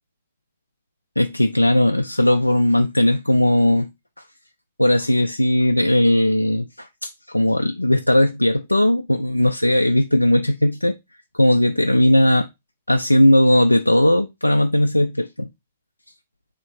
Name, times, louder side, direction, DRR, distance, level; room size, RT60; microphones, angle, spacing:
voice 1, 1.2-3.9 4.8-11.0 11.3-12.5 12.9-15.5, left 1 dB, 85° left, 0.3 m, -18 dB
3.7 x 3.2 x 4.2 m
figure-of-eight pair, 115°, 0 cm